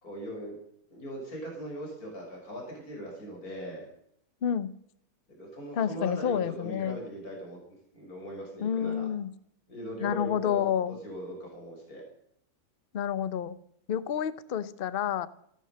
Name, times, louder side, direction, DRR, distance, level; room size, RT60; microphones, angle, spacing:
voice 1, 0.0-0.6 0.9-3.9 5.3-7.6 7.9-9.1 9.7-10.8 11.0-12.0, equal, 65° left, 0 dB, 6.0 m, -40 dB
voice 2, 4.4-4.7 5.7-7.0 8.6-9.3 10.0-11.0 12.9-13.5 13.9-15.3, left 9 dB, 45° left, 16 dB, 0.8 m, -29 dB
16.0 x 12.5 x 6.6 m, 0.70 s
omnidirectional pair, 1.6 m